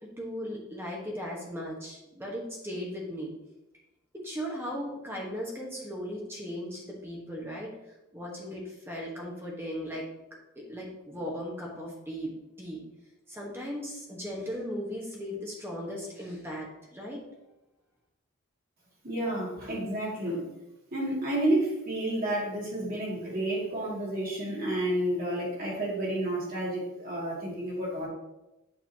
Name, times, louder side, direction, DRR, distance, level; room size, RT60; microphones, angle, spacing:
voice 1, 0.0-3.3 4.1-7.7 8.1-10.1 10.5-12.8 13.3-17.2, equal, 10° right, -3 dB, 1.2 m, -37 dB
voice 2, 19.0-20.5 20.9-28.1, right 1 dB, 40° right, -5 dB, 2.3 m, -30 dB
8.8 x 5.4 x 2.9 m, 0.93 s
head